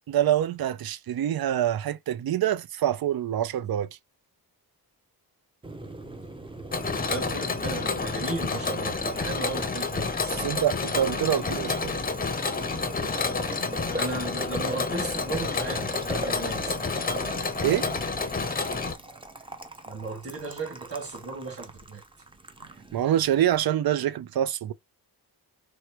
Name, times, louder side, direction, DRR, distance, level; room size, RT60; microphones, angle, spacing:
voice 1, 0.1-3.9 10.4-11.9 17.6-17.9 22.9-24.7, right 11 dB, 65° right, 0.6 m, -25 dB
Boiling, 5.6-23.6, right 2 dB, 15° right, 0.7 m, -41 dB
Mechanisms, 6.7-18.9, left 4 dB, 20° left, 0.7 m, -29 dB
voice 2, 7.1-10.6 11.3-11.4 14.0-17.0 19.9-22.0, right 3 dB, 35° right, 2.1 m, -36 dB
4.8 x 2.2 x 4.5 m
wide cardioid pair, 165°, 39 cm